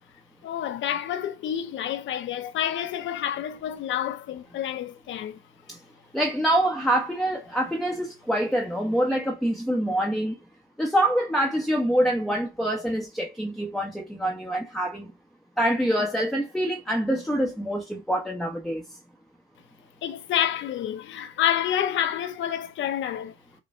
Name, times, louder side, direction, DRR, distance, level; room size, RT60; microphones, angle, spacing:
voice 1, 0.4-5.4 20.0-23.3, left 10 dB, 75° left, 0.7 m, -28 dB
voice 2, 6.1-10.3 10.8-15.1 15.6-18.8, right 1 dB, ahead, 0.8 m, -25 dB
5.1 x 2.2 x 2.5 m
cardioid pair, 90°, 20 cm